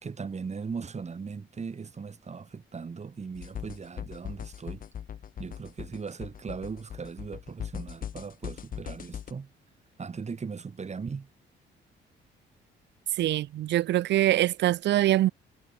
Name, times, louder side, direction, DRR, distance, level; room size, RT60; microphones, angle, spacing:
voice 1, 0.0-4.8 5.4-9.5 10.0-11.3, right 5 dB, 35° right, 2.6 m, -38 dB
sound 1, 3.3-9.3, left 9 dB, 45° left, 0.6 m, -40 dB
voice 2, 13.2-15.3, right 14 dB, 65° right, 0.4 m, -24 dB
cardioid pair, 90°, 20 cm